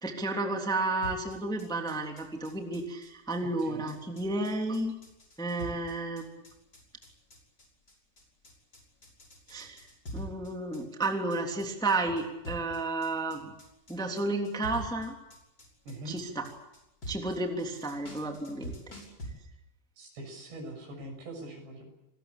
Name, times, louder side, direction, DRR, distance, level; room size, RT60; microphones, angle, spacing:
voice 1, 0.0-4.9 5.4-6.3 9.5-9.8 10.1-13.5 13.9-15.1 16.0-16.5 17.1-18.7, right 2 dB, ahead, 2 dB, 2.4 m, -32 dB
sound 1, 1.0-19.3, equal, 20° left, 6.5 m, -45 dB
voice 2, 3.4-3.9 15.9-16.2 20.0-21.9, right 1 dB, 75° right, 4 dB, 8.9 m, -43 dB
28.0 x 21.0 x 8.4 m, 0.88 s
omnidirectional pair, 4.9 m